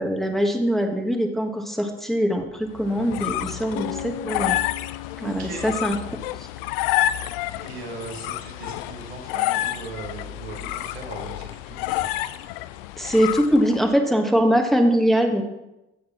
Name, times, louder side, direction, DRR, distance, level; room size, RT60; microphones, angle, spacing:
voice 1, 0.0-4.6 5.2-6.0 13.0-15.4, equal, ahead, 4 dB, 1.4 m, -22 dB
sound 1, 2.8-13.9, left 15 dB, 65° left, 0.5 m, -29 dB
voice 2, 3.4-3.8 5.2-5.7 7.6-12.0, right 4 dB, 80° right, 1 dB, 1.5 m, -39 dB
sound 2, 3.8-7.7, left 10 dB, 40° left, 0.8 m, -39 dB
13.5 x 8.1 x 3.1 m, 0.94 s
figure-of-eight pair, 45°, 31 cm